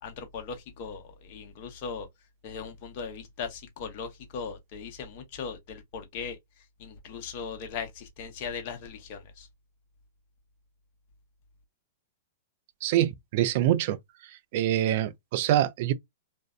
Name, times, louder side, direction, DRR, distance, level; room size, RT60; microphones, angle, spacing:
voice 1, 0.0-2.1 2.4-6.4 6.8-9.5, left 5 dB, 50° left, 0.8 m, -38 dB
voice 2, 12.8-14.0 14.5-15.9, right 12 dB, 55° right, 0.3 m, -25 dB
2.5 x 2.1 x 2.4 m
hypercardioid pair, 135°, 0 cm